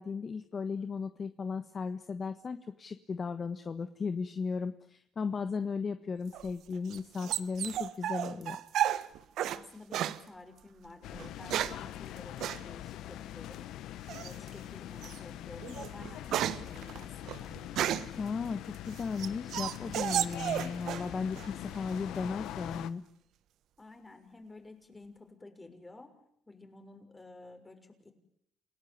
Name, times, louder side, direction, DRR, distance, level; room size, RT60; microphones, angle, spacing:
voice 1, 0.0-8.6 18.1-23.0, left 5 dB, 40° left, 10 dB, 1.4 m, -36 dB
sound 1, 6.3-9.6 9.9-10.2 11.1-11.9 12.4-12.6 14.1-14.5 15.0-15.2 15.6-18.2 18.7-21.1 21.4-22.0, right 11 dB, 75° right, 1.2 m, -33 dB
voice 2, 9.5-13.7 14.2-17.6 23.8-26.1 26.5-28.1, left 2 dB, 20° left, 6 dB, 6.3 m, -51 dB
sound 2, 11.0-22.9, left 13 dB, 85° left, 1.1 m, -43 dB
29.5 x 18.0 x 9.7 m, 0.73 s
cardioid pair, 90°, 0 cm